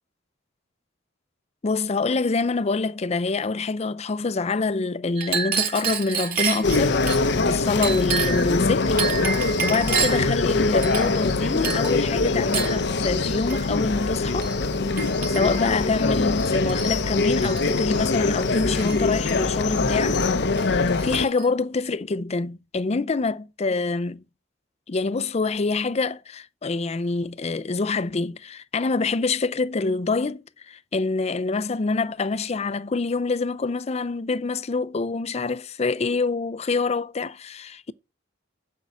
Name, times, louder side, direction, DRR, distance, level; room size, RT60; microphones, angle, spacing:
voice 1, 1.6-7.0 7.4-9.2 9.6-14.5 15.3-20.2 20.7-24.2 24.9-37.9, left 3 dB, 35° left, 0.5 m, -26 dB
Chink clink, 5.2-7.2 7.8-8.5 9.0-10.3 10.8-11.3 11.6-11.9 12.5-12.8 13.5-13.7 14.4-14.6 15.0-15.7 16.4-17.0 17.3-17.7 18.7-19.4 20.1-20.3 20.6-21.5, right 7 dB, 50° right, 2.7 m, -29 dB
sound 1, 6.6-21.3, left 3 dB, 60° left, 0.8 m, -23 dB
8.3 x 6.0 x 8.1 m
head